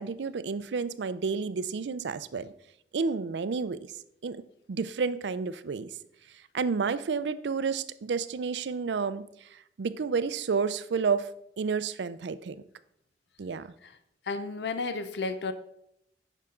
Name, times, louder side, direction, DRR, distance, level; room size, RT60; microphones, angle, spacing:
voice 1, 0.0-2.5 2.9-3.8 4.2-4.4 4.7-5.9 6.5-9.3 9.8-11.3 11.6-12.6 13.4-13.7, right 5 dB, 80° right, 15 dB, 0.4 m, -30 dB
voice 2, 14.3-15.5, left 3 dB, 75° left, 11 dB, 0.5 m, -32 dB
9.8 x 5.5 x 3.7 m, 0.75 s
head